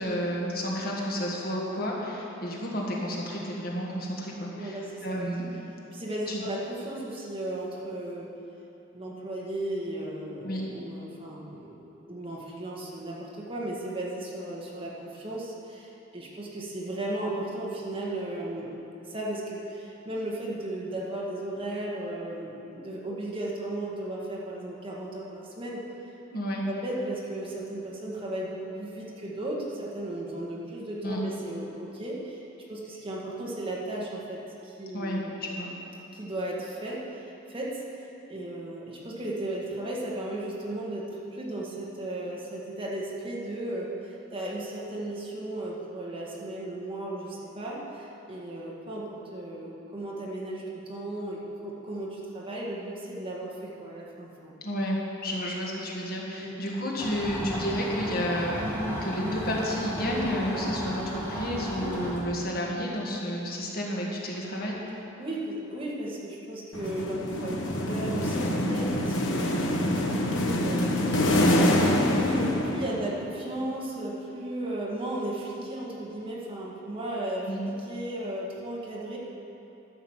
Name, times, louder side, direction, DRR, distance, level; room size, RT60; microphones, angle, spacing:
voice 1, 0.0-5.5 6.3-6.4 10.4-10.6 26.3-26.6 31.0-31.2 34.9-35.8 54.6-64.8 77.5-77.6, equal, 50° left, -3 dB, 1.8 m, -31 dB
voice 2, 4.6-5.5 5.9-8.3 8.9-11.8 12.1-18.7 19.1-25.8 26.6-32.4 32.7-35.3 36.1-37.8 38.3-54.5 56.4-56.6 65.2-69.7 70.2-71.5 72.0-79.2, right 1 dB, 30° right, -5 dB, 1.8 m, -35 dB
sound 1, 57.0-62.2, equal, 10° left, 2.1 m, -33 dB
sound 2, 66.7-73.2, left 1 dB, 70° left, 1.2 m, -25 dB
12.0 x 6.3 x 7.4 m, 2.9 s
head